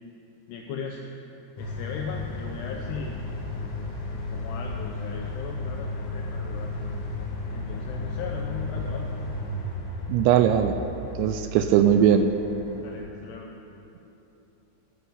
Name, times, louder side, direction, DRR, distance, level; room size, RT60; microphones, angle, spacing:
voice 1, 0.5-1.0 1.6-3.2 4.1-6.7 7.5-9.1 11.6-11.8 12.8-13.5, left 5 dB, 80° left, 1 dB, 2.4 m, -38 dB
sound 1, 1.6-13.0, left 2 dB, 50° left, 2.6 m, -34 dB
voice 2, 10.1-10.8 11.2-12.3, right 9 dB, 85° right, 8 dB, 2.6 m, -19 dB
14.0 x 6.1 x 9.5 m, 2.9 s
omnidirectional pair, 5.5 m